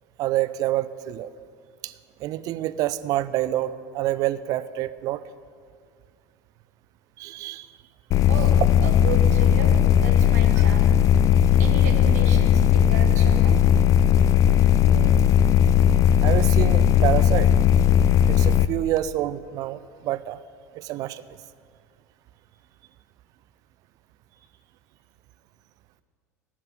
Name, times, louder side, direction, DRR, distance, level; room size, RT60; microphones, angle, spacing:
voice 1, 0.2-1.3 1.8-1.9 2.2-5.2 7.2-7.7 14.9-15.2 16.2-17.5 18.3-20.4 20.7-21.2, right 14 dB, 40° right, 16 dB, 0.4 m, -27 dB
sound 1, 8.1-18.7, left 9 dB, 35° left, 0.4 m, -17 dB
voice 2, 8.8-10.9 11.6-13.6, right 7 dB, 65° right, 4 dB, 1.4 m, -34 dB
12.0 x 6.0 x 9.0 m, 2.1 s
figure-of-eight pair, 75°, 9 cm